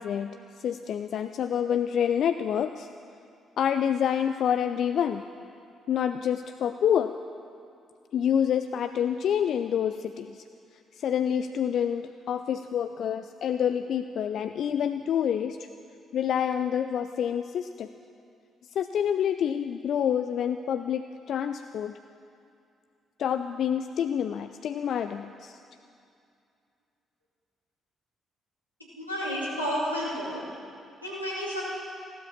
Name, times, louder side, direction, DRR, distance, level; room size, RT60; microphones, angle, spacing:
voice 1, 0.0-2.9 3.6-5.2 5.9-7.1 8.1-10.4 10.9-15.6 16.1-17.9 18.8-21.9 23.2-25.6, left 9 dB, 55° left, 9 dB, 0.4 m, -27 dB
voice 2, 29.0-30.4 31.0-31.6, equal, 90° left, -7 dB, 2.5 m, -31 dB
15.5 x 12.5 x 7.3 m, 2.5 s
figure-of-eight pair, 40°, 0 cm